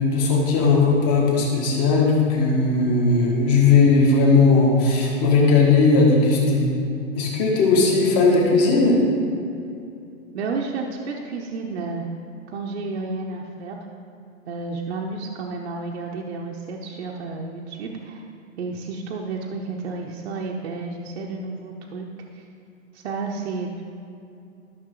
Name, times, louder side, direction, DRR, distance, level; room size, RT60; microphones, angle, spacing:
voice 1, 0.0-6.6 7.2-9.0, left 3 dB, 30° left, -2 dB, 1.7 m, -17 dB
voice 2, 10.3-12.1 12.5-13.8 14.5-18.2 18.6-22.1 22.3-22.5 22.9-23.7, right 3 dB, 55° right, -1 dB, 0.9 m, -31 dB
13.0 x 6.3 x 3.9 m, 2.7 s
hypercardioid pair, 170°, 40 cm